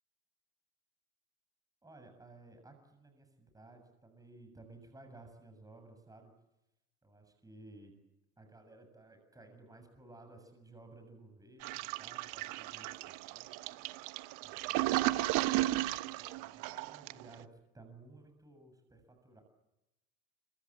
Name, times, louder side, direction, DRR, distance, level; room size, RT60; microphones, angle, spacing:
voice 1, 1.8-6.3 7.0-8.0 8.4-13.7 14.4-19.4, right 2 dB, 10° right, 6 dB, 7.4 m, -57 dB
Toilet flush, 11.6-17.3, right 17 dB, 60° right, 1.2 m, -34 dB
25.5 x 24.5 x 8.7 m, 0.91 s
supercardioid pair, 115°, 35 cm